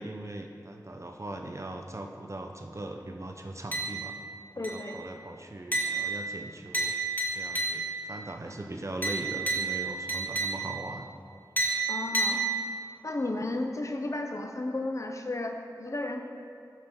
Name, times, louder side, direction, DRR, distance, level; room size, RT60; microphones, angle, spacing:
voice 1, 0.0-4.1 4.6-6.9 7.4-11.1, right 1 dB, 40° right, 3 dB, 0.6 m, -40 dB
sound 1, 3.7-4.3 4.6-5.1 5.7-8.1 9.0-10.9 11.6-13.0, right 3 dB, 25° left, 1.8 m, -31 dB
voice 2, 4.6-5.0 11.9-12.4 13.0-16.2, left 2 dB, 45° left, 4 dB, 0.7 m, -33 dB
14.5 x 5.2 x 4.1 m, 2.6 s
wide cardioid pair, 60°, 7 cm